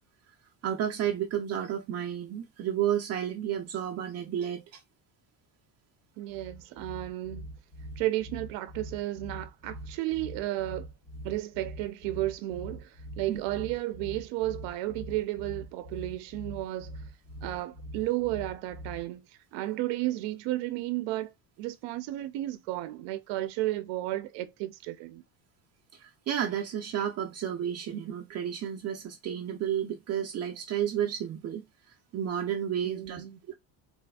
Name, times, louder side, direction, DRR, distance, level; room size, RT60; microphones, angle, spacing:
voice 1, 0.6-4.8 13.3-13.4 25.9-31.6 32.1-33.5, right 9 dB, 40° right, 0.5 m, -32 dB
voice 2, 6.2-7.4 8.0-10.9 11.2-17.0 17.4-19.3 19.5-21.3 21.6-25.2 32.8-33.4, right 16 dB, 85° right, 0.6 m, -33 dB
sound 1, 6.3-19.2, right 1 dB, 40° left, 1.2 m, -43 dB
4.0 x 2.5 x 2.3 m
cardioid pair, 160°, 43 cm